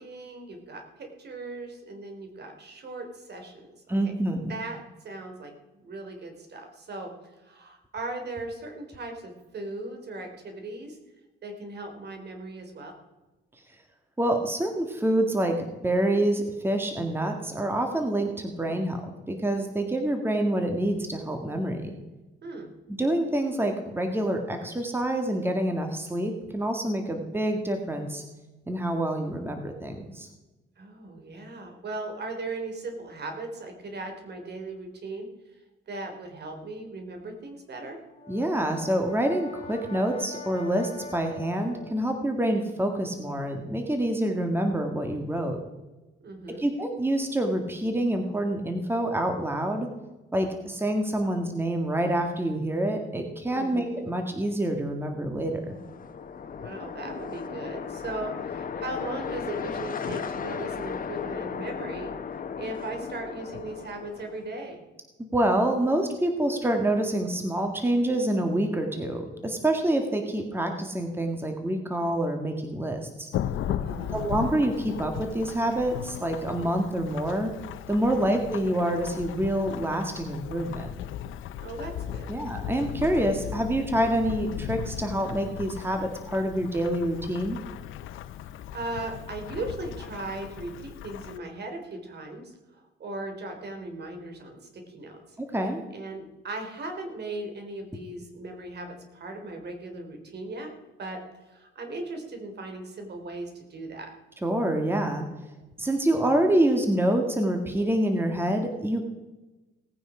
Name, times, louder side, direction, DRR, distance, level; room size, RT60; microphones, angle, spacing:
voice 1, 0.0-3.7 4.0-4.1 4.5-7.1 7.4-11.0 11.4-12.9 22.4-22.7 30.8-35.3 35.9-38.0 46.2-46.6 53.5-53.9 56.6-62.1 62.6-64.8 73.6-74.2 78.1-78.3 81.6-82.3 88.3-100.7 101.0-101.2 101.5-104.1, right 2 dB, 55° right, 4 dB, 3.4 m, -38 dB
voice 2, 3.9-4.4 14.2-19.0 19.3-21.9 23.0-28.2 28.7-30.3 38.3-45.6 46.6-49.9 50.3-55.8 65.3-73.3 74.1-77.5 77.9-80.9 82.3-87.6 95.5-95.8 104.4-105.3 105.8-109.0, right 1 dB, 10° right, 4 dB, 1.8 m, -27 dB
Brass instrument, 38.0-42.2, left 3 dB, 25° left, 4.1 m, -43 dB
sound 1, 55.6-64.6, left 6 dB, 45° left, 1.1 m, -36 dB
Thunderstorm / Rain, 73.3-91.4, left 10 dB, 80° left, 0.7 m, -37 dB
18.0 x 9.3 x 5.0 m, 1.1 s
cardioid pair, 90°, 20 cm